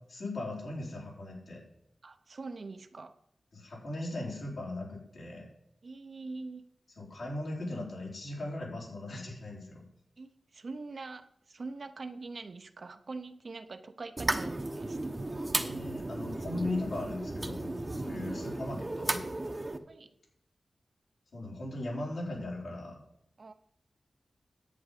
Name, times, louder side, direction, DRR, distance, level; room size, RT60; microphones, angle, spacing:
voice 1, 0.1-1.6 3.5-5.5 7.0-9.8 15.5-17.8 18.0-19.2 21.3-23.0, left 2 dB, 70° left, -3 dB, 4.4 m, -38 dB
voice 2, 2.0-3.1 5.8-6.7 10.2-15.0 18.0-18.3 19.9-20.1 23.4-23.5, right 3 dB, 50° right, 9 dB, 0.7 m, -44 dB
sound 1, 14.2-19.8, right 2 dB, 25° right, 0.9 m, -34 dB
10.5 x 8.5 x 5.1 m, 0.77 s
wide cardioid pair, 115°, 0 cm